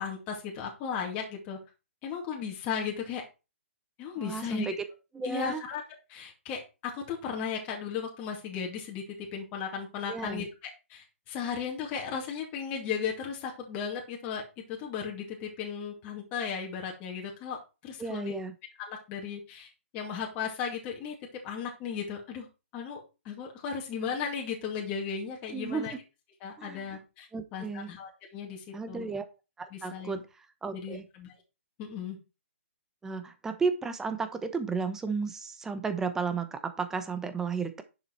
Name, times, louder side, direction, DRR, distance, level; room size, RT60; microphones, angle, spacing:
voice 1, 0.0-1.6 2.0-3.2 4.0-4.8 5.2-5.8 6.1-14.4 14.7-18.3 18.8-22.5 22.7-25.9 26.4-29.1 29.7-30.2 30.7-31.3 31.8-32.2, left 6 dB, 20° left, -1 dB, 2.4 m, -36 dB
voice 2, 4.2-4.7 5.1-5.6 10.1-10.4 18.0-18.5 25.5-26.0 26.6-27.0 27.3-27.9 28.7-29.3 29.6-31.0 33.0-37.8, right 5 dB, 5° right, 9 dB, 1.0 m, -33 dB
10.0 x 7.1 x 4.5 m, 0.29 s
hypercardioid pair, 160°, 7 cm